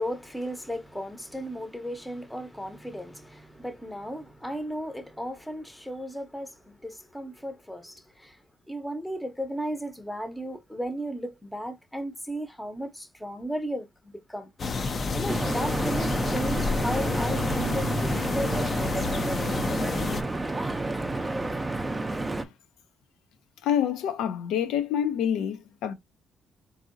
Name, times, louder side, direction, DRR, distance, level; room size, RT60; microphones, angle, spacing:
voice 1, 0.0-8.4 8.7-19.1, equal, 5° left, 0.8 m, -35 dB
sound 1, 14.6-20.2, left 4 dB, 40° left, 0.5 m, -29 dB
Stream / Boat Water vehicle, 15.3-22.4, right 2 dB, 15° right, 0.5 m, -30 dB
voice 2, 23.6-25.9, left 9 dB, 90° left, 0.6 m, -27 dB
3.8 x 2.7 x 2.5 m
cardioid pair, 90°, 0 cm